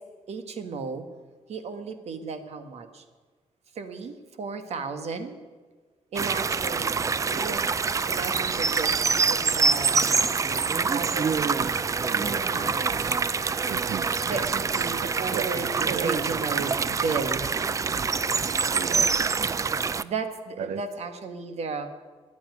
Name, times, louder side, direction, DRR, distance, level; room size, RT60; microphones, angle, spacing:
voice 1, 0.3-1.1 1.5-3.0 3.7-5.4 6.1-7.0 7.3-7.7 8.1-8.9 9.2-10.1 10.8-11.7 12.1-13.1 14.2-17.4 20.0-21.9, right 4 dB, 70° right, 8 dB, 1.6 m, -34 dB
sound 1, 6.1-20.0, right 5 dB, 30° right, 0.4 m, -25 dB
voice 2, 13.7-14.1 15.0-16.3 18.7-19.5 20.6-20.8, right 8 dB, 85° right, 11 dB, 0.6 m, -35 dB
14.0 x 10.0 x 9.6 m, 1.4 s
wide cardioid pair, 150°, 11 cm